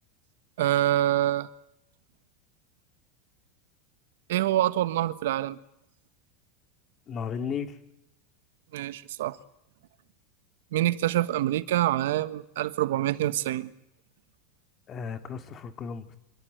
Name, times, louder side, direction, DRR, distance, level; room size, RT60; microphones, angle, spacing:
voice 1, 0.6-1.5 4.3-5.6 8.7-9.4 10.7-13.7, right 13 dB, 75° right, 15 dB, 1.4 m, -26 dB
voice 2, 7.1-7.8 14.9-16.2, left 6 dB, 25° left, 9 dB, 2.4 m, -34 dB
26.0 x 23.0 x 9.4 m, 0.78 s
supercardioid pair, 155°, 0 cm